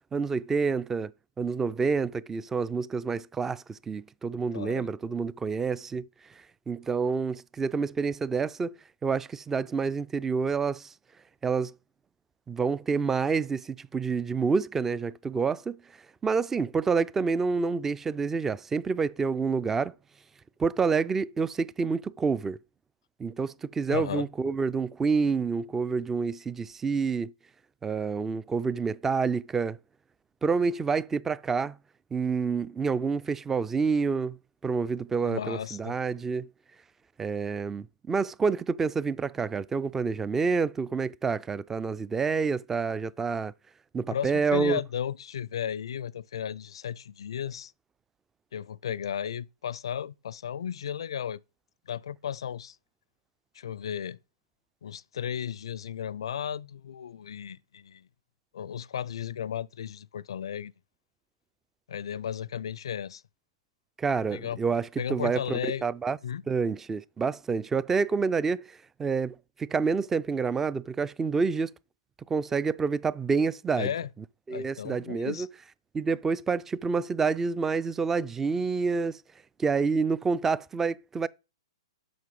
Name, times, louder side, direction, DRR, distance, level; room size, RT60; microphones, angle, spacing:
voice 1, 0.1-1.1 1.4-6.1 6.7-8.7 9.0-10.9 11.4-11.7 12.5-15.8 16.2-19.9 20.6-22.6 23.2-27.3 27.8-29.8 30.4-31.8 32.1-34.4 34.6-36.5 37.2-43.5 43.9-44.8 64.0-66.2 66.5-71.7 72.3-73.9 74.5-75.5 75.9-79.2 79.6-81.3, right 5 dB, 10° right, 0.3 m, -28 dB
voice 2, 4.5-4.9 23.9-24.3 35.2-36.0 43.9-47.7 48.5-51.4 51.9-52.8 53.5-54.2 54.8-58.1 58.5-60.7 61.9-63.2 64.3-64.6 65.0-65.9 66.2-66.4 73.8-74.1 74.5-75.5, left 9 dB, 65° left, 0.4 m, -34 dB
7.8 x 6.0 x 5.3 m
figure-of-eight pair, 120°, 3 cm